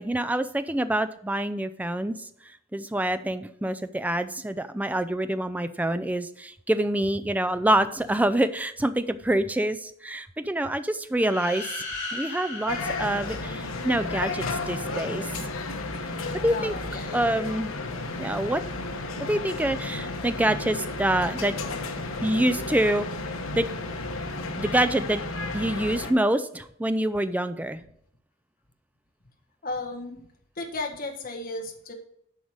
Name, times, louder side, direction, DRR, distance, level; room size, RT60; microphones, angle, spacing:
voice 1, 0.0-2.2 2.7-11.8 12.1-15.5 16.4-16.7 17.1-17.7 18.2-18.6 19.3-21.5 22.2-23.1 23.5-23.7 24.6-25.2 25.5-27.8, right 1 dB, 5° right, 12 dB, 0.4 m, -26 dB
sound 1, 11.1-14.1, left 3 dB, 20° left, 3.8 m, -37 dB
sound 2, 12.7-26.1, left 3 dB, 80° left, 1.1 m, -33 dB
voice 2, 16.5-17.2 29.6-30.2 30.6-31.9, left 2 dB, 45° left, 1 dB, 1.5 m, -34 dB
8.0 x 5.0 x 6.4 m, 0.71 s
head